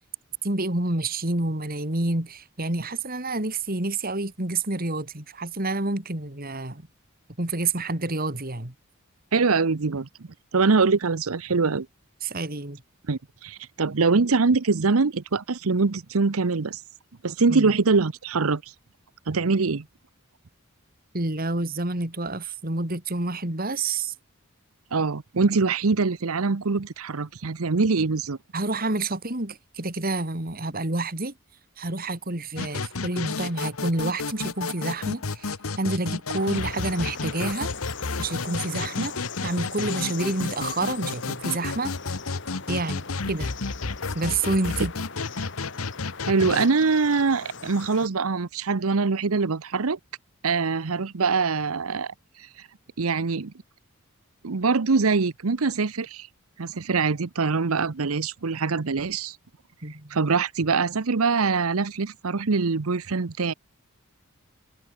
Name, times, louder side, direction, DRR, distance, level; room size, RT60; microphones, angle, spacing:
voice 1, 0.4-6.8 7.4-8.7 12.2-12.8 17.5-17.7 21.1-24.1 28.5-31.3 31.8-35.5 35.8-37.7 38.2-39.1 39.4-41.9 42.7-43.5 44.1-44.9 59.8-60.2, right 2 dB, 40° right, 2.9 m, -28 dB
voice 2, 9.3-10.1 10.5-11.9 13.1-16.8 17.2-18.6 19.3-19.9 24.9-28.4 46.3-50.0 50.4-52.5 53.0-53.5 54.4-56.3 56.6-59.4 60.1-63.5, right 4 dB, 80° right, 0.8 m, -23 dB
sound 1, 32.6-46.7, left 4 dB, 75° left, 1.2 m, -32 dB
sound 2, 36.4-48.1, left 5 dB, 55° left, 6.4 m, -40 dB
head